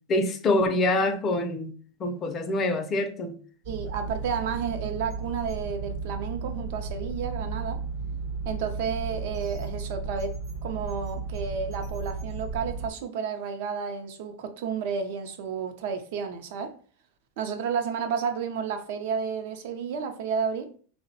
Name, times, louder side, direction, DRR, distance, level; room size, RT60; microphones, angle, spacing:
voice 1, 0.1-1.7 2.0-3.4, left 2 dB, 30° left, 0.4 m, -25 dB
sound 1, 3.6-12.9, right 4 dB, 55° right, 0.8 m, -34 dB
voice 2, 3.7-7.8 8.5-10.4 10.6-16.7 17.4-20.7, right 6 dB, 70° right, 0.4 m, -31 dB
2.7 x 2.1 x 2.6 m
supercardioid pair, 120°, 0 cm